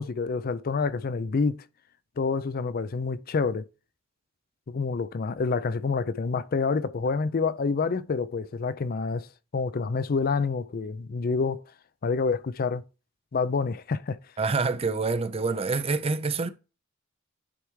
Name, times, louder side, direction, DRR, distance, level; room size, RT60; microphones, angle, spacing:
voice 1, 0.0-1.6 2.2-3.6 4.7-9.3 9.5-11.6 12.0-12.8 13.3-14.2, left 4 dB, 45° left, 0.4 m, -27 dB
voice 2, 14.4-16.5, right 4 dB, 30° right, 0.5 m, -26 dB
10.0 x 3.4 x 4.7 m
head